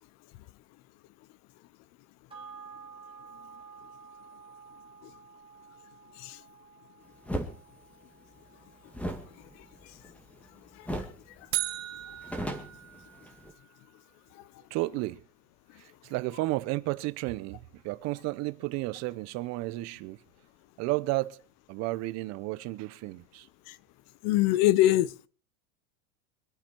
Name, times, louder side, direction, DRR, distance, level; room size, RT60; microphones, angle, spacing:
sound 1, 2.3-11.0 11.4-11.5, right 6 dB, 15° right, 3.2 m, -52 dB
sound 2, 7.2-7.5 8.9-10.5 10.8-11.2 11.5-11.6 12.0-13.5, equal, 5° left, 2.0 m, -36 dB
voice 1, 9.6-9.9 10.7-11.1 11.4-11.5 14.3-14.5 23.7-23.8 24.2-25.3, left 15 dB, 40° left, 0.6 m, -26 dB
sound 3, 11.5-13.6, right 16 dB, 70° right, 1.3 m, -36 dB
voice 2, 14.7-15.2 15.8-20.2 20.8-21.4 21.7-23.5, right 19 dB, 40° right, 0.7 m, -32 dB
25.0 x 8.7 x 4.4 m
supercardioid pair, 130°, 41 cm